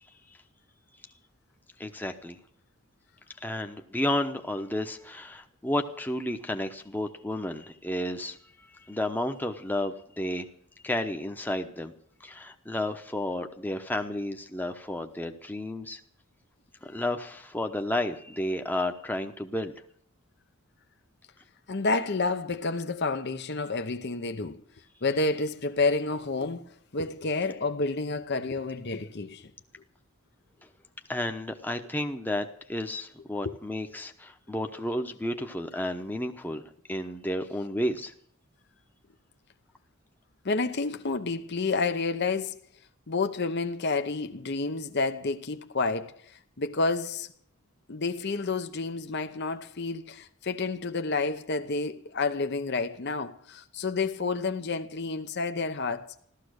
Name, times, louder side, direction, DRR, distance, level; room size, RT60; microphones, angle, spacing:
voice 1, 1.8-2.4 3.4-8.4 8.9-10.5 10.8-11.9 12.2-16.0 16.8-19.7 31.1-38.1, left 1 dB, 10° left, 0.9 m, -32 dB
voice 2, 21.7-24.6 25.0-29.5 33.4-33.6 40.4-42.6 43.1-47.3 47.9-56.1, left 3 dB, 50° left, 0.9 m, -30 dB
15.5 x 13.0 x 6.4 m
head